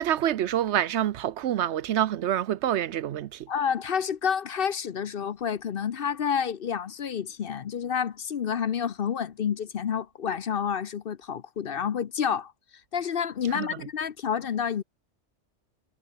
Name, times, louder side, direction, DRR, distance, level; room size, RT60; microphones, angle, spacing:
voice 1, 0.0-3.5 13.5-13.8, right 11 dB, 70° right, 0.9 m, -27 dB
voice 2, 3.5-12.5 12.9-14.8, left 7 dB, 55° left, 0.8 m, -29 dB
omnidirectional pair, 1.3 m